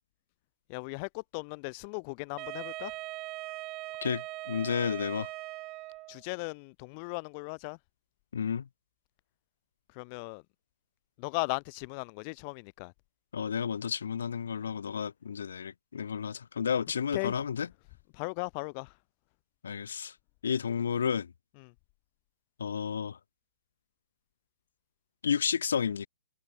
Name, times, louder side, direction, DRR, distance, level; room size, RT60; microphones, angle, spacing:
voice 1, 0.7-2.9 6.1-7.8 10.0-10.4 11.2-12.9 17.1-17.3 18.1-18.9 21.6-21.7, left 34 dB, 20° left, 4.4 m, -37 dB
Wind instrument woodwind instrument, 2.4-6.2, right 20 dB, 15° right, 7.5 m, -40 dB
voice 2, 4.0-5.3 8.3-8.7 13.3-17.7 19.6-20.1 20.4-21.3 22.6-23.2 25.2-26.1, left 7 dB, 60° left, 7.4 m, -31 dB
hypercardioid pair, 175°, 0 cm